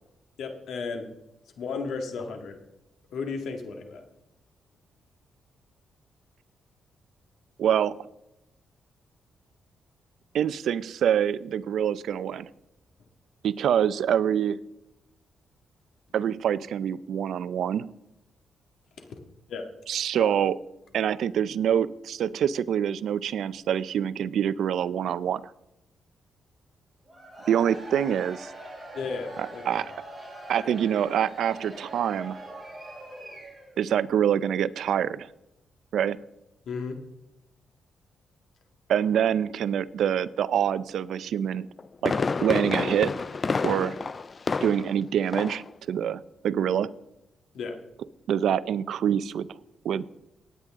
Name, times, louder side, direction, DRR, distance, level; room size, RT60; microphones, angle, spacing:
voice 1, 0.4-1.1 1.6-2.6 3.1-4.0 19.0-19.1 19.5-19.7 20.1-20.3 28.9-29.9 36.7-37.0 47.5-47.8, left 4 dB, 80° left, 4 dB, 1.9 m, -34 dB
voice 2, 7.6-8.0 10.3-12.5 13.4-14.6 16.1-17.9 19.9-20.6 20.9-25.4 27.5-28.5 29.4-29.9 30.5-32.4 33.8-35.3 35.9-36.2 38.9-41.7 42.0-43.1 43.6-44.0 44.6-46.9 48.3-49.5 49.8-50.0, right 9 dB, 75° right, 17 dB, 0.5 m, -25 dB
Cheering / Crowd, 27.1-33.8, right 1 dB, ahead, 5.7 m, -43 dB
Fireworks, 41.6-45.0 45.3-45.7 46.0-46.1, left 4 dB, 30° left, 0.3 m, -29 dB
18.0 x 9.2 x 3.7 m, 0.88 s
cardioid pair, 125°, 0 cm